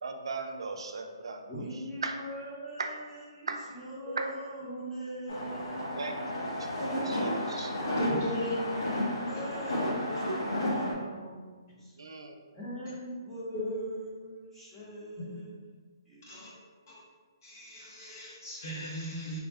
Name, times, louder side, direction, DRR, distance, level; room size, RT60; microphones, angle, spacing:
voice 1, 0.0-1.4 2.0-2.2 2.8-2.9 3.5-3.6 4.2-4.3 6.0-6.2 6.6-6.7 7.0-7.7 12.0-12.4, right 4 dB, 80° right, 4 dB, 0.4 m, -37 dB
voice 2, 1.5-6.4 8.0-11.9 12.5-15.5 16.1-16.4, equal, 5° left, -10 dB, 0.7 m, -41 dB
sound 1, 5.3-10.9, left 1 dB, 70° left, 1.3 m, -32 dB
voice 3, 8.0-8.5 10.3-10.4 13.5-13.8 16.3-16.5 16.9-17.0 17.4-19.4, equal, 40° left, -4 dB, 0.8 m, -36 dB
3.4 x 2.1 x 3.4 m, 1.5 s
hypercardioid pair, 175°, 3 cm